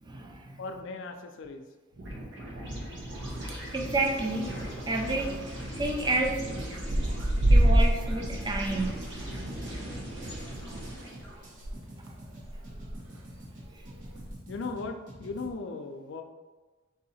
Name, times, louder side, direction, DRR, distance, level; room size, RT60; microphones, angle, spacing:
voice 1, 0.0-0.6 3.7-4.5 4.9-5.4 5.8-6.4 7.5-9.0, right 2 dB, 20° right, 2 dB, 0.5 m, -30 dB
voice 2, 0.6-1.6 7.0-7.1 14.5-16.2, left 3 dB, 65° left, 5 dB, 0.4 m, -37 dB
sound 1, 1.9-11.4, right 1 dB, 65° right, 1.0 m, -38 dB
sound 2, 3.3-3.7 4.1-4.4 4.7-4.8 4.9-5.0 5.8-6.4 6.6-11.7 12.1-12.2 12.4-12.9 13.6-14.3, right 1 dB, 90° right, 0.6 m, -26 dB
sound 3, 4.1-5.4 5.8-15.5, right 1 dB, 45° right, 1.0 m, -48 dB
3.8 x 2.8 x 4.1 m, 1.3 s
head